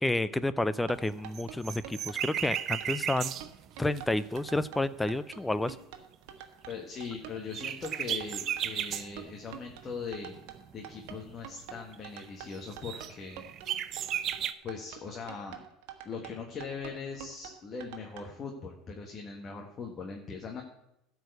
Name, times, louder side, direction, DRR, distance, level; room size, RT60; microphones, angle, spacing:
voice 1, 0.0-3.3 3.8-5.8, left 2 dB, 10° left, 15 dB, 0.5 m, -30 dB
sound 1, 0.8-18.2, right 10 dB, 75° right, 1.3 m, -46 dB
sound 2, 1.1-4.9 6.7-6.8 7.1-7.2 7.5-9.1 9.7-11.5 11.7-12.0 12.2-12.3 12.5-14.5, right 10 dB, 45° right, 0.6 m, -35 dB
voice 2, 6.7-10.3 10.7-13.4 14.6-15.6 16.0-20.6, left 5 dB, 35° left, 1 dB, 1.6 m, -40 dB
12.5 x 4.7 x 8.0 m, 0.83 s
supercardioid pair, 100°, 0 cm